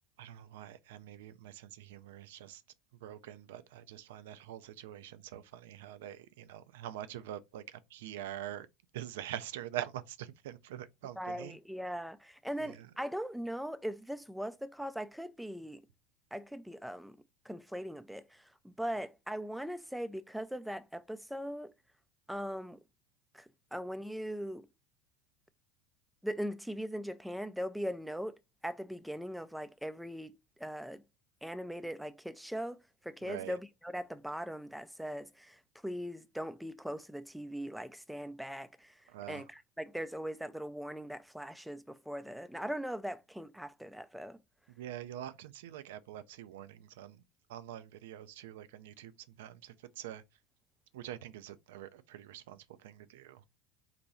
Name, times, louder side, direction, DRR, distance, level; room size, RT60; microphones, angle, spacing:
voice 1, 0.2-2.6 3.0-8.7 8.9-11.5 12.6-12.9 33.3-33.5 39.1-39.4 44.8-47.2 47.5-49.1 49.4-50.2 50.9-53.4, right 11 dB, 70° right, 0.4 m, -44 dB
voice 2, 11.2-15.8 16.3-17.2 17.5-21.7 22.3-22.8 23.3-24.7 26.2-28.3 28.6-31.0 31.4-32.8 33.0-39.0 39.3-44.4, equal, ahead, 0.4 m, -40 dB
4.1 x 2.2 x 4.2 m
hypercardioid pair, 80°, 0 cm